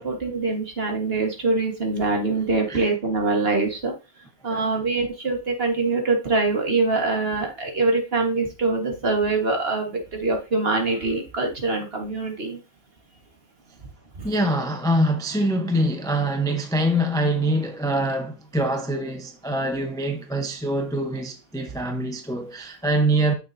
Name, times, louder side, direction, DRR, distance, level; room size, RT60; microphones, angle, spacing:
voice 1, 0.0-3.9 4.4-12.6 14.2-14.3, right 3 dB, 45° right, 1.8 m, -24 dB
voice 2, 14.2-23.3, right 1 dB, 5° left, 0.6 m, -24 dB
9.0 x 6.6 x 2.7 m
omnidirectional pair, 1.5 m